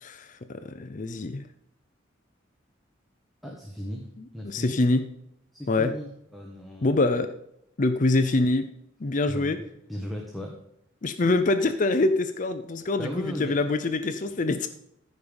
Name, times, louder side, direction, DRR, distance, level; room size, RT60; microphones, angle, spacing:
voice 1, 0.0-1.4 4.4-5.0 5.7-5.9 6.8-7.3 7.8-8.7 9.0-9.6 11.0-14.7, left 2 dB, 40° left, 10 dB, 0.5 m, -25 dB
voice 2, 3.4-4.1 4.3-4.7 5.5-7.0 9.3-9.5 9.9-10.6 13.0-13.6, equal, ahead, -1 dB, 1.3 m, -36 dB
14.5 x 5.5 x 5.2 m, 0.77 s
head